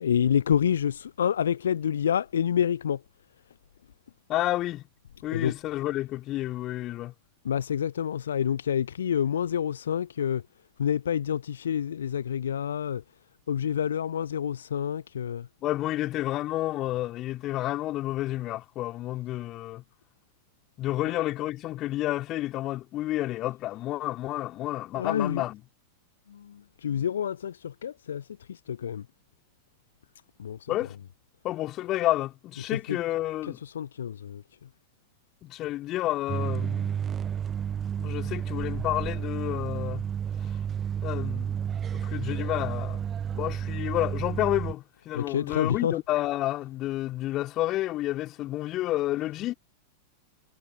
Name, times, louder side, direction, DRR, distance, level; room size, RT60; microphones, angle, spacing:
voice 1, 0.0-3.0 5.3-5.5 7.4-10.4 10.8-13.0 13.5-15.5 25.0-25.4 26.3-28.2 28.5-29.0 30.4-30.7 32.7-33.0 33.6-34.4 45.1-46.0, left 8 dB, 65° left, 0.7 m, -28 dB
voice 2, 4.3-4.8 5.2-7.1 15.6-19.8 20.8-25.6 30.7-31.0 31.4-33.6 35.4-37.0 38.0-40.1 41.0-43.0 43.3-49.5, left 15 dB, 35° left, 4.0 m, -30 dB
sound 1, 36.3-44.7, right 8 dB, 25° right, 0.5 m, -31 dB
figure-of-eight pair, 90°, 0 cm